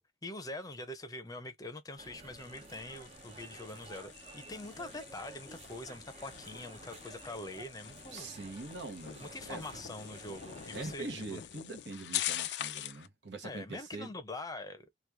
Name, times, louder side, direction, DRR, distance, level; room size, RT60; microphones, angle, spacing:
voice 1, 0.0-8.3 9.2-11.4 13.4-14.9, left 2 dB, 20° left, 0.6 m, -44 dB
sound 1, 2.0-11.0, right 3 dB, 35° right, 0.5 m, -52 dB
sound 2, 2.4-13.1, left 12 dB, 70° left, 0.4 m, -43 dB
voice 2, 8.1-9.6 10.7-14.1, right 3 dB, 80° right, 0.9 m, -43 dB
3.0 x 2.3 x 3.4 m
head